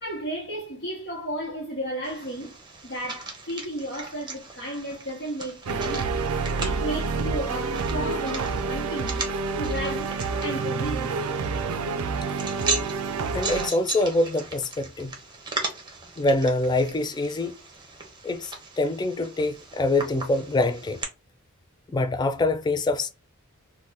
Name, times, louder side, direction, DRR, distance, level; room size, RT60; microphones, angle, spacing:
voice 1, 0.0-6.1 6.6-9.3 9.6-11.3, equal, 55° left, 1.0 m, -34 dB
sound 1, 2.0-21.0, right 3 dB, 20° right, 0.7 m, -37 dB
sound 2, 5.7-13.7, right 4 dB, 75° right, 0.4 m, -28 dB
voice 2, 13.3-15.1 16.2-17.5 18.2-21.0 21.9-23.1, left 2 dB, 20° left, 0.3 m, -25 dB
2.8 x 2.1 x 3.3 m
head